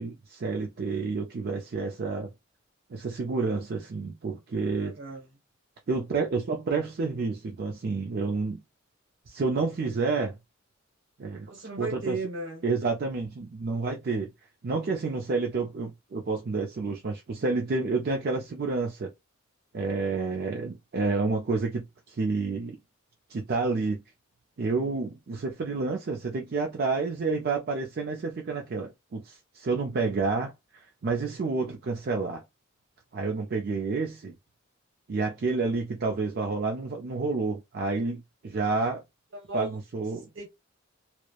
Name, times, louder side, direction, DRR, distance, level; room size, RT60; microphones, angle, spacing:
voice 1, 0.0-2.3 2.9-5.0 5.9-8.6 9.3-10.3 11.2-11.5 11.8-12.2 12.6-14.3 14.6-19.1 19.7-22.8 23.3-24.0 24.6-32.4 33.1-34.3 35.1-39.0 39.5-40.3, right 4 dB, 50° right, 0.4 m, -29 dB
voice 2, 4.8-5.3 11.5-12.6 39.3-39.8 40.3-40.5, right 2 dB, 65° right, 1.1 m, -35 dB
3.0 x 2.0 x 2.3 m
head